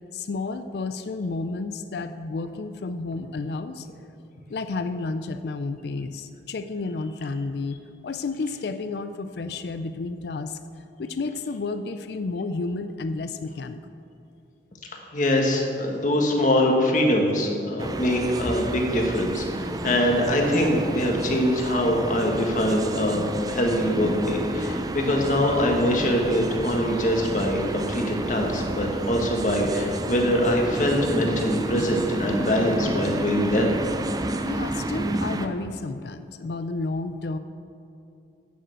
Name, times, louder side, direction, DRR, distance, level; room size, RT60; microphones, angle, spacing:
voice 1, 0.1-3.9 4.5-10.6 11.0-13.8 34.4-37.4, left 3 dB, 65° left, 10 dB, 0.4 m, -31 dB
voice 2, 15.1-33.7, left 1 dB, 45° left, 1 dB, 1.6 m, -23 dB
sound 1, 17.8-35.5, right 1 dB, 20° right, 0.4 m, -30 dB
10.0 x 6.7 x 7.8 m, 2.6 s
head